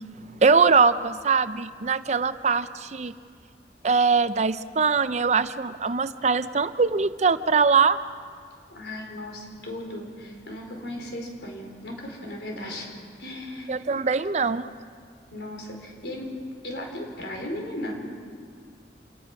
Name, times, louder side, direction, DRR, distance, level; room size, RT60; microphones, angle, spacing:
voice 1, 0.4-3.1 3.8-8.0 13.7-14.6, right 5 dB, 40° right, 13 dB, 0.5 m, -22 dB
voice 2, 8.7-12.9 13.2-14.0 15.3-16.3 16.6-18.0, left 1 dB, 70° left, 1 dB, 4.6 m, -36 dB
28.0 x 19.0 x 6.1 m, 2.1 s
head